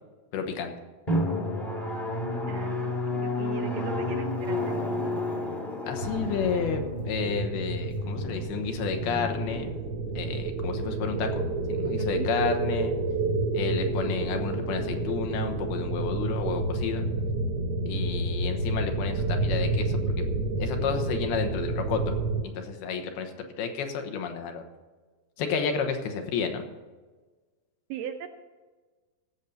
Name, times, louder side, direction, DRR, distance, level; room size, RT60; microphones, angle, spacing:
voice 1, 0.3-0.7 5.9-9.8 10.2-11.3 11.7-13.0 13.5-17.0 17.9-20.0 20.6-22.1 22.4-23.3 23.6-24.6 25.4-26.6, left 6 dB, 90° left, 5 dB, 3.1 m, -31 dB
Drum, 1.1-10.3, left 1 dB, 25° left, 0.8 m, -31 dB
voice 2, 2.5-4.8 12.0-12.3 27.9-28.4, right 9 dB, 80° right, 5 dB, 2.0 m, -39 dB
sound 1, 6.0-22.4, right 2 dB, 65° right, 1.5 m, -29 dB
16.5 x 7.0 x 5.5 m, 1.3 s
omnidirectional pair, 4.4 m